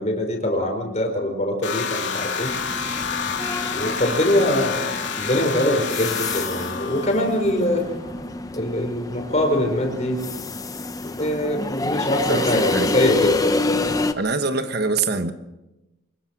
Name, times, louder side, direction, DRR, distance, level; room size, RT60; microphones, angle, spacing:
voice 1, 0.0-2.5 3.7-7.9 8.5-10.2 11.2-13.5, left 1 dB, 35° left, 4.5 m, -23 dB
sound 1, 1.6-7.8, left 6 dB, 60° left, 2.9 m, -29 dB
sound 2, 2.5-14.1, left 2 dB, 20° left, 0.9 m, -28 dB
voice 2, 12.3-12.9 14.2-15.3, right 3 dB, 55° right, 1.3 m, -24 dB
25.5 x 21.0 x 6.2 m
head